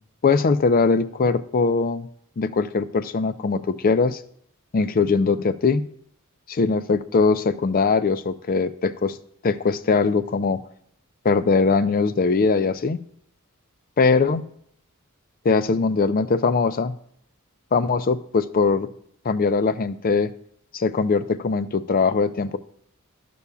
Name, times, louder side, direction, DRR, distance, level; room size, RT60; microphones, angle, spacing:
voice 1, 0.2-2.1 2.4-4.2 4.7-5.9 6.5-9.2 9.4-10.6 11.2-13.0 14.0-14.4 15.4-17.0 17.7-18.9 19.2-20.3 20.7-22.6, left 4 dB, 40° left, 14 dB, 0.4 m, -21 dB
12.5 x 6.8 x 2.3 m, 0.68 s
head